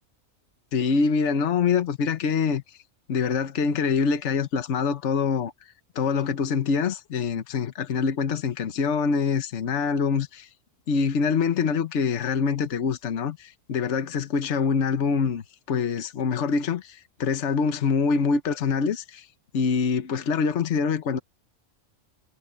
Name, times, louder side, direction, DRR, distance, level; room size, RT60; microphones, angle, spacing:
voice 1, 0.7-2.6 3.1-5.5 5.9-10.5 10.9-19.3 19.5-21.2, left 5 dB, 65° left, 1.3 m, -25 dB
omnidirectional pair, 1.3 m